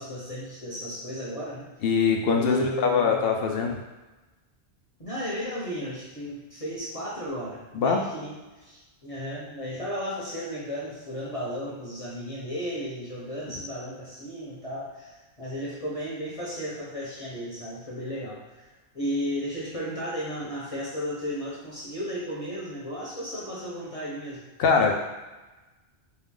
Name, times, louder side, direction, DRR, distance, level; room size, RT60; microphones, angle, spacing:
voice 1, 0.0-1.7 2.3-3.4 5.0-18.7 18.9-24.5 24.9-25.0, equal, 35° left, -7 dB, 0.9 m, -34 dB
voice 2, 1.8-3.8 7.7-8.0 24.6-24.9, left 5 dB, 60° left, 2 dB, 0.7 m, -22 dB
4.4 x 2.3 x 3.6 m, 1.1 s
omnidirectional pair, 1.2 m